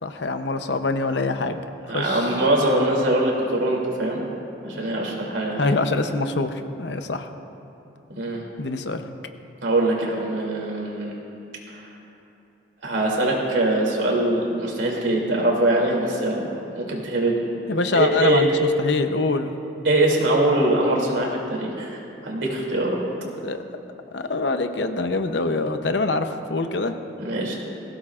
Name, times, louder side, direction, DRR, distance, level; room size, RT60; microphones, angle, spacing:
voice 1, 0.0-1.6 1.9-2.3 5.6-7.3 8.6-9.0 17.7-18.5 18.8-19.5 23.4-23.6 24.1-26.9, left 3 dB, 65° left, 8 dB, 0.7 m, -24 dB
voice 2, 1.9-4.2 4.6-5.8 8.1-8.4 9.6-11.1 11.7-11.8 12.8-17.4 17.9-18.5 19.8-22.0 22.2-23.0 27.2-27.5, right 1 dB, 80° right, -2 dB, 2.8 m, -22 dB
20.5 x 16.5 x 2.5 m, 2.8 s
head